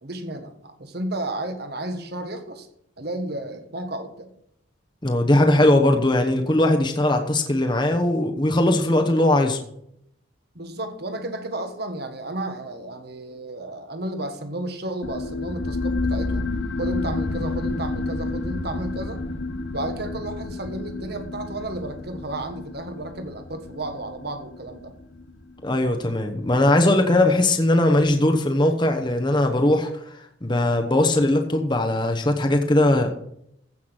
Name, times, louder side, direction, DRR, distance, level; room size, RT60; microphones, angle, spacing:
voice 1, 0.0-2.7 3.0-4.3 10.5-16.5 16.8-19.2 19.7-24.9 26.9-27.4, right 1 dB, 50° right, 7 dB, 1.4 m, -32 dB
voice 2, 5.0-9.6 25.6-29.9 30.4-33.1, left 1 dB, 20° left, 4 dB, 1.0 m, -19 dB
sound 1, 15.0-26.2, left 2 dB, 60° left, 0.9 m, -30 dB
15.0 x 5.9 x 6.3 m, 0.73 s
head